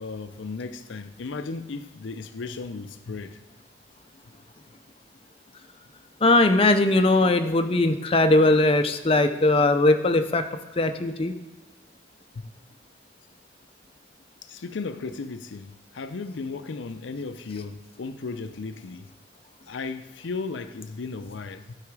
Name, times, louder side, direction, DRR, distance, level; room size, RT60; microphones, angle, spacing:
voice 1, 0.0-3.4 14.4-19.1 19.7-21.7, left 4 dB, 75° left, 0.5 m, -35 dB
voice 2, 6.2-10.4 10.8-11.3, left 2 dB, 30° left, 0.5 m, -20 dB
11.5 x 4.8 x 4.8 m
head